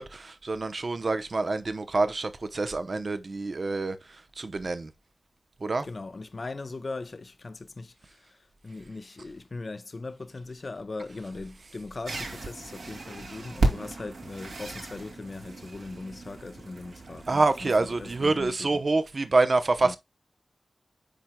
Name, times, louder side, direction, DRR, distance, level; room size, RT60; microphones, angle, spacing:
voice 1, 0.0-4.9 5.6-5.9 17.3-20.0, right 3 dB, 50° right, 0.8 m, -27 dB
voice 2, 5.8-18.7 19.8-20.0, left 3 dB, 45° left, 0.8 m, -39 dB
sound 1, 12.0-18.4, right 2 dB, 80° right, 2.5 m, -34 dB
10.0 x 4.5 x 2.2 m
wide cardioid pair, 85°, 0 cm